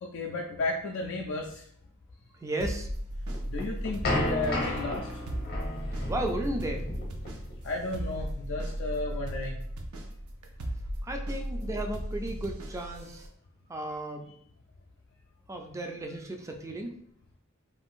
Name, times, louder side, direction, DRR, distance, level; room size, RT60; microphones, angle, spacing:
voice 1, 0.0-1.7 3.5-5.1 7.6-9.6, left 3 dB, 60° left, -1 dB, 0.4 m, -33 dB
voice 2, 2.4-2.9 6.1-6.9 11.0-13.2 13.7-14.3 15.5-16.9, right 1 dB, 15° right, 3 dB, 0.3 m, -34 dB
sound 1, 2.6-13.3, equal, 85° right, 0.5 m, -36 dB
sound 2, 3.3-8.2, left 1 dB, 45° left, 0.8 m, -34 dB
2.5 x 2.4 x 3.5 m, 0.66 s
head